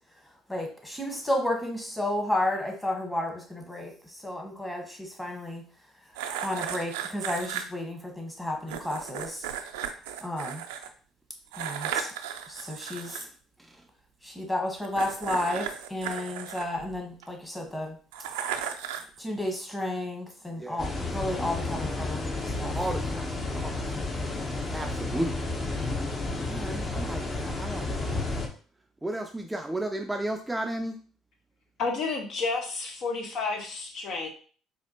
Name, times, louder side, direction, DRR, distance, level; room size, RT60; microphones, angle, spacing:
voice 1, 0.5-5.6 6.4-9.5 10.2-10.6 11.6-12.1 12.5-13.3 14.2-18.0 19.2-22.8, left 1 dB, 10° left, 1 dB, 1.3 m, -32 dB
sound 1, 6.2-7.6 8.7-10.9 11.5-13.2 14.8-17.3 18.1-19.2, right 9 dB, 85° right, 0.3 m, -35 dB
sound 2, 20.8-28.5, left 2 dB, 30° left, 0.9 m, -31 dB
voice 2, 22.7-23.3 23.5-23.8 24.6-25.4 26.4-28.2 29.0-31.0, right 1 dB, 10° right, 4 dB, 0.4 m, -33 dB
voice 3, 31.8-34.3, left 4 dB, 60° left, 3 dB, 0.8 m, -31 dB
4.1 x 2.5 x 2.8 m, 0.41 s
hypercardioid pair, 65°, 0 cm